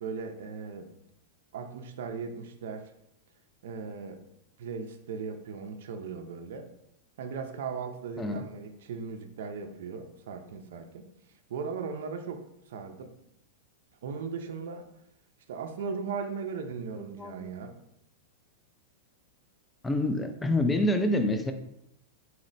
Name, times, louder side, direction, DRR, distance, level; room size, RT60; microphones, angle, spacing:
voice 1, 0.0-0.9 1.5-2.9 3.6-4.2 4.6-6.7 7.2-11.1 11.5-13.1 14.0-14.9 15.5-17.7, right 5 dB, 75° right, 5 dB, 0.4 m, -38 dB
voice 2, 16.9-17.5 19.8-21.5, left 1 dB, 10° left, 7 dB, 0.3 m, -27 dB
4.2 x 2.0 x 3.9 m, 0.79 s
hypercardioid pair, 135°, 0 cm